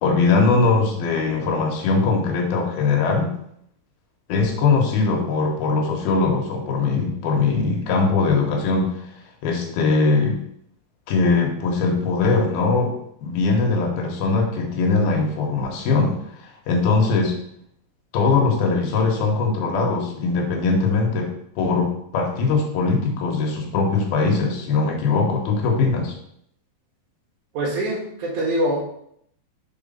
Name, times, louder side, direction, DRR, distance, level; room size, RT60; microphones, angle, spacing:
voice 1, 0.0-3.3 4.3-8.9 9.4-10.4 11.1-12.9 13.2-16.2 16.7-17.4 18.1-21.3 21.6-26.1, left 4 dB, 70° left, 2 dB, 2.7 m, -21 dB
voice 2, 27.5-28.8, right 1 dB, 55° right, -4 dB, 2.7 m, -24 dB
6.2 x 4.5 x 5.6 m, 0.71 s
omnidirectional pair, 5.1 m